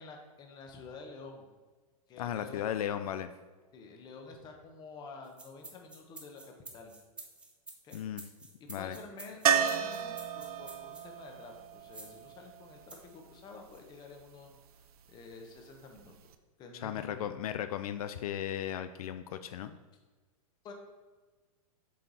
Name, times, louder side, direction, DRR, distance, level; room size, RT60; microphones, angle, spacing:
voice 1, 0.0-1.4 2.1-2.7 3.7-6.9 7.8-8.0 8.6-14.5 15.1-16.1 16.6-17.3 20.6-20.7, left 4 dB, 20° left, 3 dB, 1.0 m, -49 dB
voice 2, 2.2-3.3 7.9-8.2 8.7-9.0 16.7-19.8, left 10 dB, 80° left, 10 dB, 0.4 m, -36 dB
sound 1, 5.2-11.1 11.9-12.2 12.9-13.1 13.7-13.8, right 2 dB, 5° right, 0.5 m, -50 dB
sound 2, 9.5-13.3 16.0-16.1 16.3-16.4, right 8 dB, 90° right, 0.6 m, -32 dB
7.2 x 4.6 x 4.0 m, 1.3 s
supercardioid pair, 150°, 18 cm